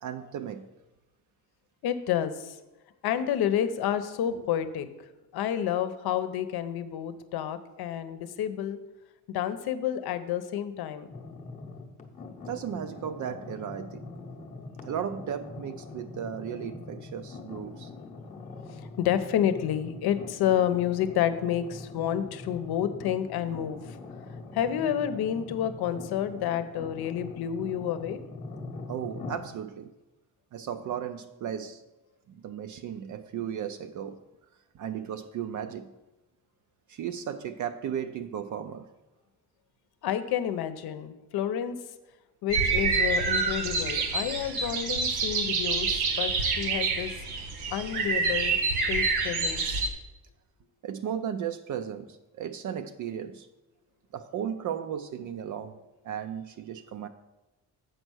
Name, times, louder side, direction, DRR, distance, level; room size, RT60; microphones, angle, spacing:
voice 1, 0.0-0.7 4.3-4.5 12.5-14.1 14.8-17.9 28.9-29.9 30.5-31.8 32.4-34.2 34.7-35.9 36.9-38.9 50.8-53.5 54.1-55.8 56.0-57.1, right 9 dB, 50° right, 8 dB, 0.5 m, -35 dB
voice 2, 1.8-2.6 3.0-4.9 5.3-8.8 9.3-11.1 19.0-24.0 24.5-28.2 40.0-41.8 42.4-47.1 47.7-48.6 48.9-49.6, left 10 dB, 75° left, 11 dB, 0.8 m, -29 dB
sound 1, 11.1-29.4, left 3 dB, 20° left, 0.8 m, -43 dB
sound 2, 42.5-49.9, right 4 dB, 75° right, 1.3 m, -27 dB
7.7 x 5.5 x 6.2 m, 1.0 s
cardioid pair, 175°, 38 cm